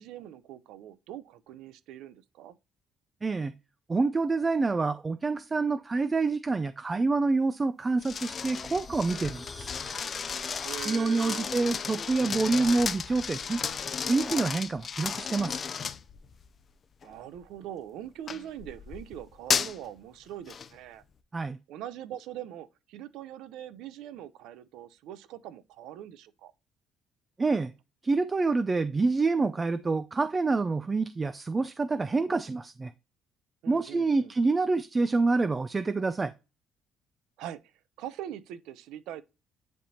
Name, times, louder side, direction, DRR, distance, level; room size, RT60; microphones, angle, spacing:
voice 1, 0.0-2.6 10.6-11.5 17.0-21.0 21.7-26.5 33.6-34.3 37.4-37.6 38.0-39.2, right 11 dB, 85° right, 0.6 m, -42 dB
voice 2, 3.2-3.5 3.9-9.7 10.8-13.6 14.1-15.7 21.3-21.6 27.4-27.7 28.0-32.9 33.7-36.3, right 3 dB, 20° right, 0.4 m, -27 dB
sound 1, 7.8-14.1, left 3 dB, 20° left, 0.9 m, -48 dB
sound 2, 8.0-16.5 17.0-17.4 18.3-19.8 20.5-20.7, left 6 dB, 40° left, 0.4 m, -34 dB
10.0 x 3.5 x 2.8 m
cardioid pair, 120°, 0 cm